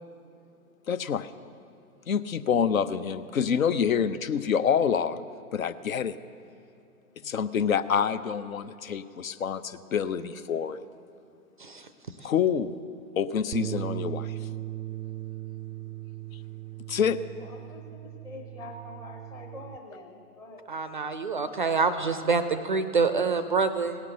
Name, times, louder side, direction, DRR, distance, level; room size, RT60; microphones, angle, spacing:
voice 1, 0.9-1.3 2.1-5.2 5.5-6.2 7.2-10.9 12.2-12.8 13.2-14.4 16.9-17.2, left 7 dB, 65° left, 14 dB, 0.6 m, -27 dB
Bass guitar, 13.5-19.8, right 12 dB, 85° right, 0.5 m, -38 dB
voice 2, 17.4-20.6, left 2 dB, 10° left, 2 dB, 0.6 m, -45 dB
voice 3, 20.7-24.0, right 4 dB, 35° right, 11 dB, 0.4 m, -26 dB
17.0 x 5.9 x 7.8 m, 2.8 s
figure-of-eight pair, 120°, 44 cm